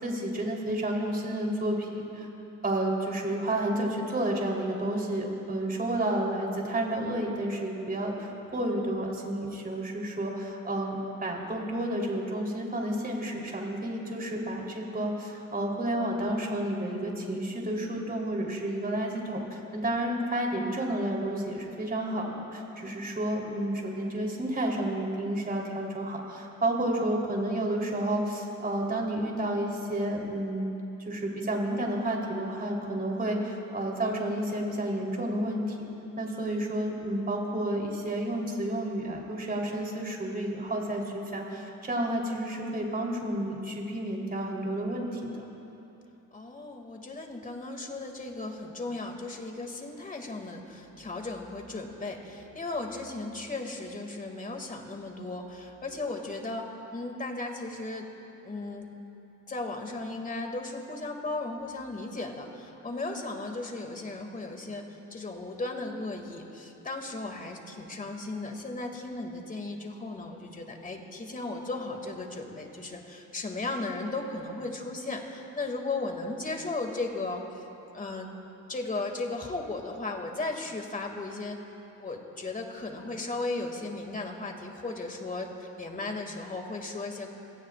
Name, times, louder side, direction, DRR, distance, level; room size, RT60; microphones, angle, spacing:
voice 1, 0.0-2.3 2.6-30.7 31.0-35.9 36.2-45.4, right 1 dB, 30° right, -1 dB, 3.8 m, -31 dB
voice 2, 46.3-58.1 58.4-58.9 59.5-64.8 65.1-77.4 77.9-78.3 78.7-81.6 82.0-87.3, left 2 dB, 25° left, 3 dB, 2.4 m, -36 dB
27.5 x 18.0 x 2.5 m, 2.9 s
cardioid pair, 90°, 30 cm